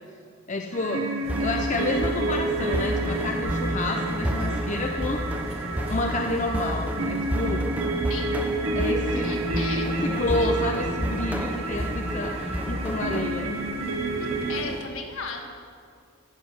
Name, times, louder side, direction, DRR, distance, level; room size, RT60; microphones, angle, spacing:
voice 1, 0.5-1.1 1.4-5.6 5.9-7.7 8.8-9.4 10.0-13.5, left 2 dB, 35° left, 3 dB, 0.6 m, -29 dB
sound 1, 0.7-14.6, right 2 dB, 75° right, 1.3 m, -30 dB
sound 2, 1.2-14.8, equal, 30° right, 1.2 m, -39 dB
sound 3, 1.3-13.3, equal, 5° right, 0.7 m, -31 dB
voice 2, 9.2-10.0 10.4-10.5 14.2-15.4, left 5 dB, 70° left, 2 dB, 1.7 m, -36 dB
11.0 x 7.6 x 9.2 m, 2.2 s
head